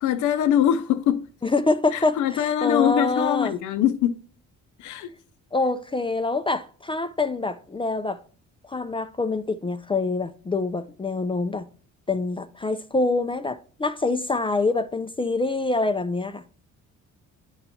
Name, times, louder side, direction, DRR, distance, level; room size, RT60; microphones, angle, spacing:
voice 1, 0.0-1.3 1.9-4.2 4.8-5.1, left 10 dB, 75° left, 0.6 m, -23 dB
voice 2, 1.4-3.5 5.5-8.2 8.6-11.7 12.1-16.4, left 3 dB, 20° left, 0.4 m, -25 dB
10.5 x 4.4 x 2.7 m
cardioid pair, 90°, 30 cm